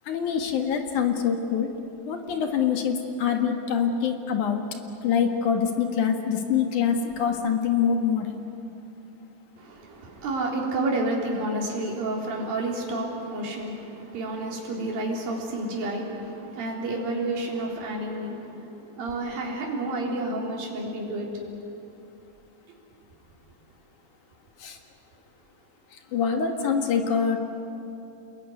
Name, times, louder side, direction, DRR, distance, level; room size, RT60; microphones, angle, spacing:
voice 1, 0.1-1.7 2.1-4.6 5.0-8.4 24.6-24.8 26.1-27.4, left 7 dB, 55° left, 4 dB, 3.0 m, -25 dB
voice 2, 9.6-21.5, right 2 dB, 65° right, -2 dB, 5.5 m, -30 dB
28.0 x 21.5 x 9.5 m, 2.8 s
omnidirectional pair, 4.5 m